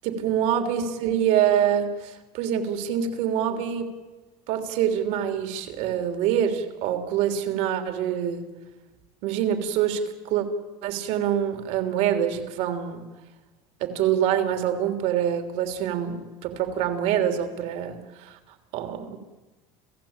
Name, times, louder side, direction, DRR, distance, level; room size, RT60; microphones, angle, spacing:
voice 1, 0.0-3.9 4.5-8.5 9.2-10.5 10.8-13.0 13.8-18.4 18.7-19.2, right 9 dB, 70° right, 7 dB, 3.3 m, -25 dB
30.0 x 16.5 x 8.9 m, 1.2 s
cardioid pair, 130°, 12 cm